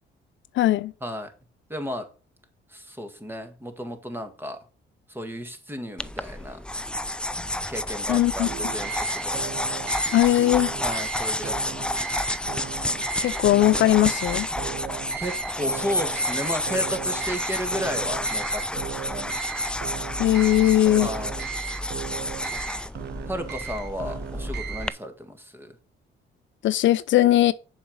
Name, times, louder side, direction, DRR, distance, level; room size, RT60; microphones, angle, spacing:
voice 1, 0.6-0.9 8.1-8.5 10.1-10.7 13.2-14.5 20.2-21.1 26.6-27.5, left 14 dB, 70° left, 0.5 m, -19 dB
voice 2, 1.7-2.1 2.7-4.6 5.1-6.6 7.7-9.4 10.8-12.2 15.2-19.4 21.0-21.5 23.3-25.8, equal, 10° right, 1.8 m, -34 dB
sound 1, 6.0-24.9, left 1 dB, 5° left, 0.4 m, -30 dB
sound 2, 8.4-25.1, right 10 dB, 55° right, 0.7 m, -36 dB
7.1 x 5.3 x 6.4 m
cardioid pair, 90°, 20 cm